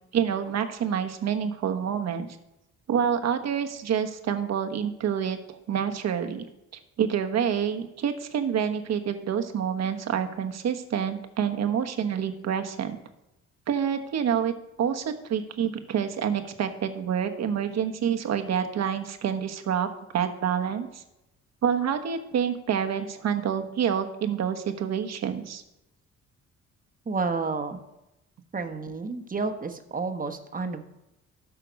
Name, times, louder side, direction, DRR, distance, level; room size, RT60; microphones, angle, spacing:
voice 1, 0.1-2.3 2.9-6.5 7.0-13.0 13.7-14.5 14.8-19.9 20.1-21.0 21.6-25.6, right 8 dB, 60° right, 6 dB, 1.2 m, -27 dB
voice 2, 27.1-27.8 28.5-30.8, right 4 dB, 30° right, 6 dB, 1.1 m, -30 dB
13.0 x 5.7 x 5.2 m, 0.91 s
cardioid pair, 90°, 30 cm